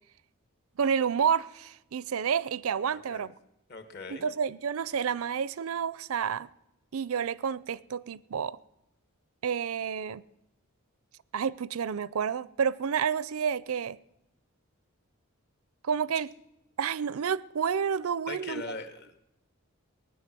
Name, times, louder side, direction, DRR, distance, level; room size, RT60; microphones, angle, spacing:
voice 1, 0.8-3.3 4.1-6.5 6.9-8.6 9.4-10.2 11.3-14.0 15.8-16.3 16.8-18.8, right 7 dB, 75° right, 0.5 m, -30 dB
voice 2, 2.9-3.3 3.7-4.3 18.3-19.2, left 3 dB, 45° left, 1.5 m, -40 dB
20.0 x 9.7 x 6.1 m
head